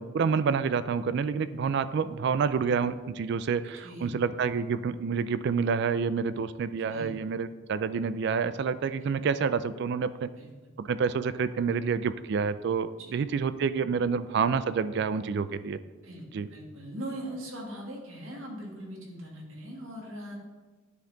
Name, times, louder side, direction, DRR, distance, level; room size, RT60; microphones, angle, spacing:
voice 1, 0.0-10.3 10.8-15.8 16.3-16.5, right 6 dB, 55° right, 14 dB, 0.3 m, -28 dB
voice 2, 3.8-4.5 6.9-7.2 9.0-9.1 10.4-10.5 13.0-13.2 16.0-20.4, right 1 dB, 85° right, -1 dB, 1.8 m, -41 dB
10.0 x 4.2 x 3.9 m, 1.3 s
head